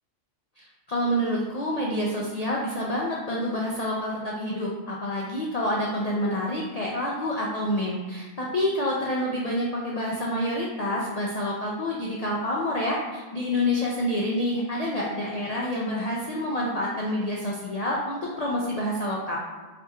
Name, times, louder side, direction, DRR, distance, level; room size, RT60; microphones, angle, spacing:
voice 1, 0.6-19.4, left 1 dB, 70° left, -4 dB, 0.3 m, -28 dB
4.3 x 3.6 x 2.3 m, 1.3 s
omnidirectional pair, 1.3 m